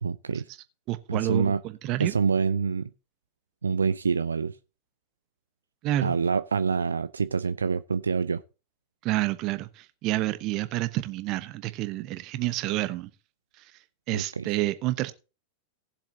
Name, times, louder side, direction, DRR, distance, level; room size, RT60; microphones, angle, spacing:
voice 1, 0.0-0.5 1.1-1.6 2.0-2.9 3.6-4.6 6.0-8.4 14.1-14.4, right 5 dB, 75° right, 0.4 m, -26 dB
voice 2, 0.9-2.1 5.8-6.1 9.0-13.1 14.1-15.1, right 16 dB, 40° right, 1.0 m, -29 dB
18.5 x 7.3 x 2.8 m
figure-of-eight pair, 90°, 0 cm